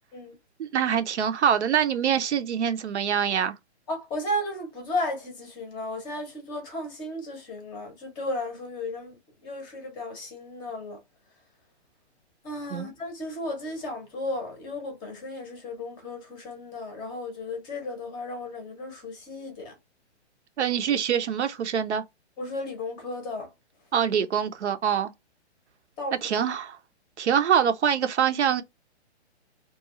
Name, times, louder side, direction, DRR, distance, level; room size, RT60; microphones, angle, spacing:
voice 1, 0.6-3.6 12.7-12.9 20.6-22.0 23.9-25.1 26.1-26.8 27.2-28.6, right 8 dB, 80° right, 0.7 m, -24 dB
voice 2, 3.9-11.0 12.4-19.8 22.4-23.5 26.0-26.2, left 1 dB, 15° left, 0.6 m, -34 dB
2.4 x 2.3 x 2.9 m
hypercardioid pair, 145°, 34 cm